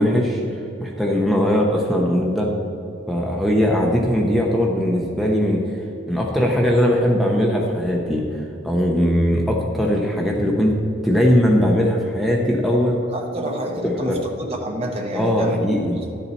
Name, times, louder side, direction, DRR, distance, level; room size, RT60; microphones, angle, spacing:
voice 1, 0.0-2.5 3.1-5.8 6.1-13.0 14.1-14.2 15.1-16.0, equal, ahead, -2 dB, 0.7 m, -20 dB
voice 2, 13.1-15.6 15.9-16.2, right 1 dB, 30° right, 1 dB, 1.0 m, -28 dB
11.5 x 6.9 x 4.3 m, 2.8 s
head